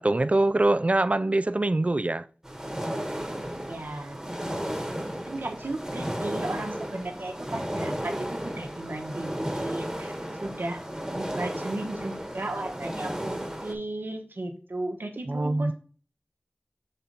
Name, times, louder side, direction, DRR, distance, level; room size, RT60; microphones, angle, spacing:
voice 1, 0.0-2.2 15.3-15.7, right 2 dB, 40° right, 0.3 m, -23 dB
sound 1, 2.4-13.7, equal, 15° right, 1.3 m, -34 dB
voice 2, 3.6-4.4 5.3-10.1 10.4-10.8 11.1-15.7, right 2 dB, 85° right, 1.0 m, -35 dB
6.7 x 4.3 x 3.9 m
wide cardioid pair, 50°, 4 cm